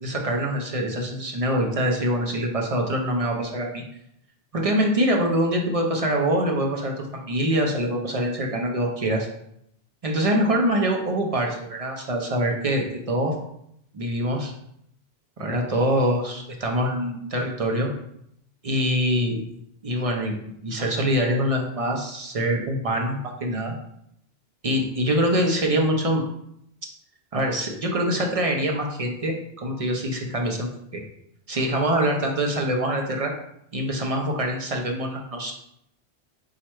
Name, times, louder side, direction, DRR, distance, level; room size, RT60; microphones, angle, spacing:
voice 1, 0.0-3.8 4.5-9.3 10.0-13.3 13.9-14.5 15.4-17.9 18.6-19.4 19.8-20.4 20.6-23.7 24.6-26.2 27.3-31.0 31.5-33.3 33.7-35.5, equal, 40° right, 1 dB, 0.6 m, -24 dB
4.5 x 2.4 x 4.3 m, 0.74 s
omnidirectional pair, 1.0 m